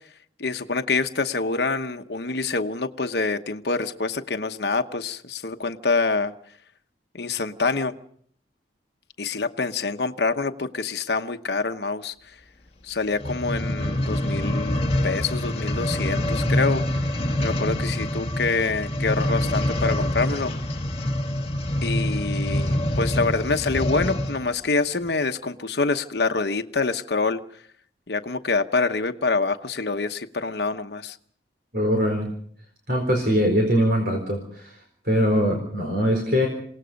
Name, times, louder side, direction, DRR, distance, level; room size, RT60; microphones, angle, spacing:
voice 1, 0.4-6.3 7.1-7.9 9.2-12.1 12.8-14.8 15.0-16.8 17.4-20.5 21.8-27.4 28.1-31.2, left 4 dB, 70° left, 7 dB, 1.0 m, -26 dB
sound 1, 13.1-24.5 25.1-25.2, left 1 dB, 35° left, 1.6 m, -25 dB
voice 2, 31.7-32.3 32.9-34.7 35.1-36.5, equal, 60° right, 3 dB, 4.3 m, -22 dB
28.0 x 18.5 x 5.2 m, 0.62 s
head